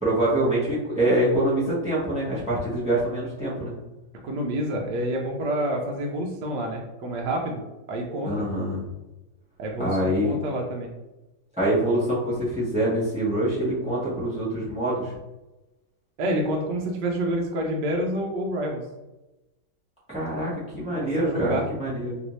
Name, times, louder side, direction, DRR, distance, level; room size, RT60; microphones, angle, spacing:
voice 1, 0.0-3.7 8.2-8.8 9.8-10.3 11.6-15.1 20.1-22.2, right 1 dB, 5° right, -7 dB, 0.7 m, -25 dB
voice 2, 4.2-7.6 7.9-8.3 9.6-10.9 16.2-18.8 21.0-21.7, right 1 dB, 75° right, 0 dB, 1.1 m, -28 dB
3.2 x 2.6 x 3.0 m, 1.0 s
omnidirectional pair, 1.9 m